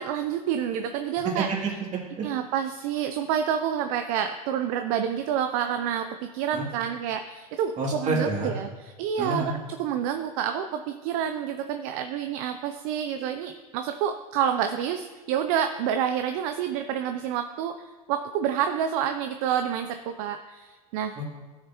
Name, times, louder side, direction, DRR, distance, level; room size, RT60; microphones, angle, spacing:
voice 1, 0.0-1.5 2.2-21.1, right 9 dB, 60° right, 8 dB, 0.6 m, -28 dB
voice 2, 1.4-2.3 6.5-6.6 7.8-8.5 9.2-9.5 21.2-21.4, right 3 dB, 35° right, -1 dB, 2.7 m, -29 dB
14.0 x 6.6 x 3.0 m, 1.3 s
hypercardioid pair, 90°, 20 cm